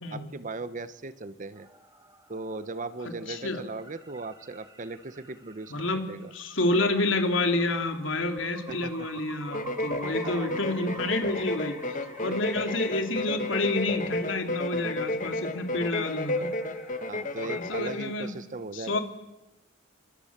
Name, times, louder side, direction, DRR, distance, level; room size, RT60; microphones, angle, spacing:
voice 1, 0.1-1.7 2.3-6.3 8.7-8.9 10.2-10.5 12.2-12.4 17.1-19.0, right 3 dB, 40° right, 13 dB, 0.9 m, -38 dB
sound 1, 1.5-18.4, right 3 dB, 20° right, 3.0 m, -50 dB
voice 2, 3.0-3.6 5.7-16.5 17.4-18.4 18.7-19.0, left 2 dB, 85° left, 5 dB, 3.3 m, -29 dB
sound 2, 9.5-18.0, left 2 dB, 45° left, 1.9 m, -32 dB
27.0 x 25.5 x 7.5 m, 0.97 s
head